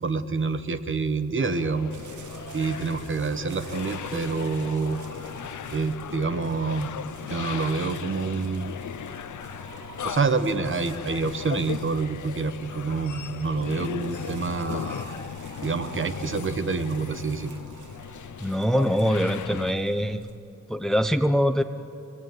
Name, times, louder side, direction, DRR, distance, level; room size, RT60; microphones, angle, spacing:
voice 1, 0.0-1.9 2.5-5.0 5.7-6.9 7.2-8.8 10.0-15.2 15.6-17.6, right 4 dB, 45° right, 10 dB, 1.0 m, -27 dB
sound 1, 1.4-19.7, left 9 dB, 90° left, 0.6 m, -37 dB
sound 2, 1.9-20.4, right 6 dB, 90° right, 1.2 m, -46 dB
voice 2, 18.4-20.2 20.7-21.6, equal, ahead, 9 dB, 0.6 m, -23 dB
25.5 x 19.0 x 9.1 m, 2.6 s
wide cardioid pair, 155°, 29 cm